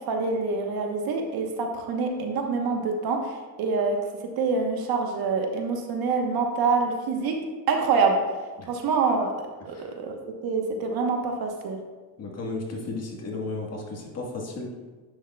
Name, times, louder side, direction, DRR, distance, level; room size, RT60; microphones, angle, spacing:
voice 1, 0.1-7.4 7.7-8.2 8.7-9.3 9.6-10.2 10.4-11.8, right 4 dB, 60° right, 3 dB, 1.1 m, -26 dB
voice 2, 12.2-14.7, left 3 dB, 40° left, -1 dB, 1.5 m, -34 dB
10.0 x 6.4 x 2.3 m, 1.3 s
cardioid pair, 120°, 41 cm